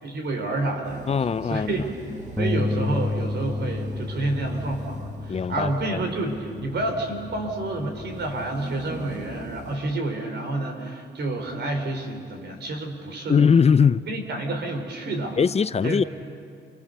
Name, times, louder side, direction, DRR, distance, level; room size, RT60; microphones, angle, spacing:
voice 1, 0.0-1.0 1.4-1.9 2.4-13.5 14.1-15.4 15.8-16.1, right 2 dB, 60° right, 4 dB, 4.8 m, -29 dB
sound 1, 0.8-9.8, right 2 dB, 35° right, 2.5 m, -42 dB
voice 2, 1.1-1.8 5.3-6.0 13.3-14.0 15.4-16.0, left 6 dB, 30° left, 16 dB, 0.7 m, -20 dB
Bass guitar, 2.4-8.6, left 3 dB, 5° left, 1.2 m, -32 dB
29.5 x 28.5 x 6.9 m, 2.2 s
cardioid pair, 90°, 20 cm